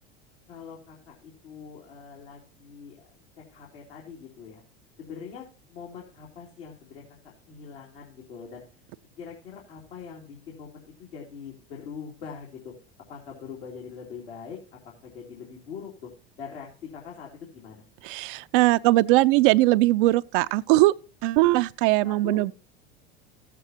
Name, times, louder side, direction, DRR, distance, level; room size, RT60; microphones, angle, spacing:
voice 1, 0.5-3.2 3.5-4.6 5.0-8.6 9.2-12.7 13.1-14.6 15.0-16.1 16.4-17.8 22.0-22.4, left 6 dB, 70° left, 3.1 m, -43 dB
voice 2, 18.0-20.9 21.2-22.5, right 18 dB, 60° right, 0.4 m, -20 dB
14.5 x 8.3 x 2.8 m
hypercardioid pair, 85°, 31 cm